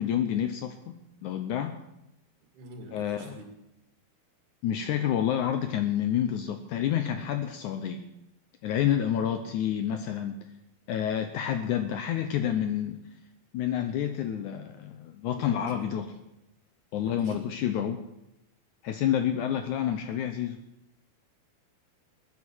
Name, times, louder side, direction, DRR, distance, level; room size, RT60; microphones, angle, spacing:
voice 1, 0.0-1.7 2.9-3.4 4.6-8.0 8.6-10.4 10.9-13.0 13.5-16.1 16.9-18.0 18.8-20.6, left 10 dB, 85° left, 8 dB, 1.7 m, -29 dB
voice 2, 2.5-3.5 15.3-16.1 17.0-17.5, right 2 dB, 90° right, 3 dB, 4.0 m, -47 dB
21.0 x 9.6 x 6.2 m, 0.89 s
omnidirectional pair, 4.5 m